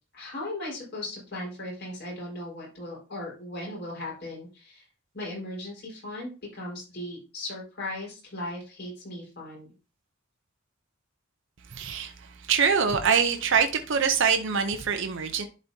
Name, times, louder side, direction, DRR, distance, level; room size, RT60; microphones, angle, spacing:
voice 1, 0.1-4.8 5.1-9.7, left 1 dB, 55° left, 4.6 m, -37 dB
voice 2, 11.7-12.1 12.5-15.4, right 6 dB, 65° right, 0.7 m, -24 dB
11.5 x 4.3 x 2.8 m
head